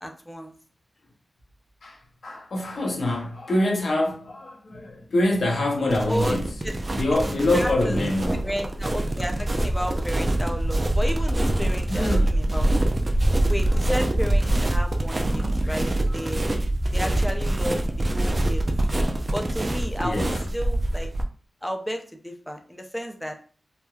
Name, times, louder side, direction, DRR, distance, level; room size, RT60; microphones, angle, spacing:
voice 1, 0.0-0.5 6.1-6.4 6.6-6.7 7.5-8.0 8.3-12.7 13.5-16.4 16.9-18.6 19.3-20.3 20.5-21.1 21.6-23.3, equal, 10° left, 0.6 m, -32 dB
voice 2, 1.8-6.6 7.0-8.6 11.9-12.4 15.6-15.7 16.1-16.3 20.0-20.4, left 1 dB, 70° left, 0.6 m, -25 dB
sound 1, 5.9-21.2, right 1 dB, 40° right, 0.4 m, -24 dB
3.0 x 2.1 x 2.3 m
cardioid pair, 50°, 0 cm